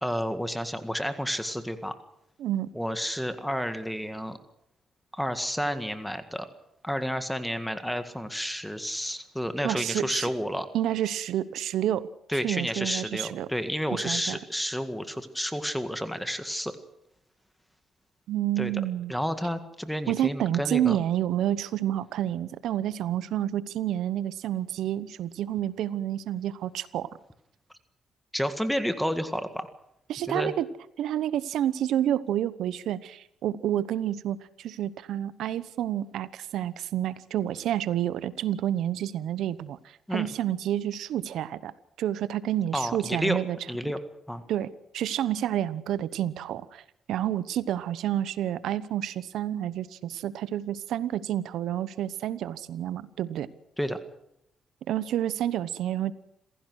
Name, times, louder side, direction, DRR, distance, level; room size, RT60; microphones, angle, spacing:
voice 1, 0.0-1.9 2.7-4.4 5.1-6.5 6.8-10.7 12.3-16.8 18.6-18.7 19.1-21.0 28.3-29.7 30.3-30.5 40.1-40.3 42.7-43.4 43.7-44.0 44.3-44.4 53.8-54.0, equal, 5° left, 9 dB, 1.9 m, -30 dB
voice 2, 9.6-10.3 10.7-12.1 12.3-13.5 13.9-14.4 18.3-19.1 20.1-27.1 30.1-30.7 31.0-41.7 42.0-43.6 44.5-46.8 47.1-53.5 54.9-56.1, right 11 dB, 80° right, 16 dB, 1.0 m, -29 dB
27.0 x 16.0 x 6.4 m, 0.77 s
cardioid pair, 90°, 0 cm